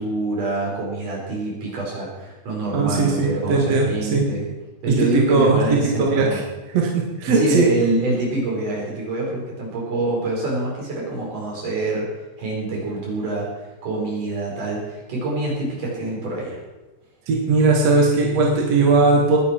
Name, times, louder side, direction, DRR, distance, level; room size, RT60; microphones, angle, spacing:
voice 1, 0.0-4.5 4.8-6.4 7.3-12.1 12.4-13.5 13.8-16.6, right 2 dB, 75° right, -3 dB, 6.5 m, -25 dB
voice 2, 2.7-4.3 5.0-6.4 6.7-7.7 17.3-19.4, right 3 dB, 55° right, -1 dB, 2.8 m, -18 dB
20.5 x 11.0 x 4.5 m, 1.1 s
omnidirectional pair, 3.7 m